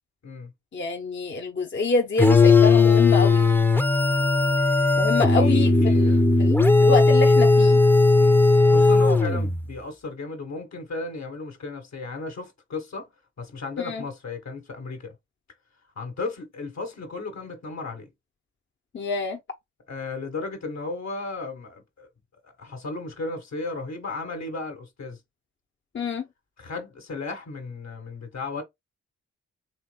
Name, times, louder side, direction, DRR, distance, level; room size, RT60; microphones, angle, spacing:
voice 1, 0.7-3.4 5.0-6.1 6.4-7.8 13.8-14.0 18.9-19.4 25.9-26.2, left 3 dB, 40° left, 0.8 m, -26 dB
sound 1, 2.2-9.6, left 3 dB, 5° left, 0.7 m, -17 dB
voice 2, 5.1-6.3 8.1-13.1 13.4-15.2 16.0-18.1 19.9-22.1 22.4-25.2 26.6-28.6, left 3 dB, 60° left, 1.6 m, -35 dB
4.4 x 3.4 x 2.3 m
supercardioid pair, 45°, 30 cm